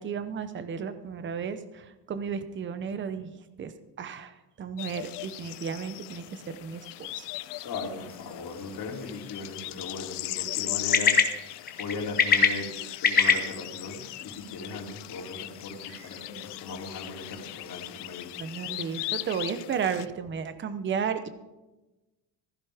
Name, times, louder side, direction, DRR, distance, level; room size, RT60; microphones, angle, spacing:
voice 1, 0.0-3.3 3.6-3.7 4.0-6.8 7.1-7.3 18.4-21.3, right 6 dB, 30° right, 10 dB, 0.7 m, -33 dB
sound 1, 4.8-20.1, left 18 dB, 80° left, 0.6 m, -38 dB
voice 2, 7.6-12.7 13.0-18.4, left 3 dB, 55° left, -1 dB, 3.2 m, -38 dB
sound 2, 8.1-19.7, left 5 dB, 20° left, 1.0 m, -30 dB
Meow, 12.6-13.1 13.6-13.7 15.7-16.3 17.9-18.0 18.6-18.9, right 3 dB, 55° right, 4.8 m, -56 dB
15.5 x 15.0 x 3.5 m, 1.1 s
cardioid pair, 175°, 41 cm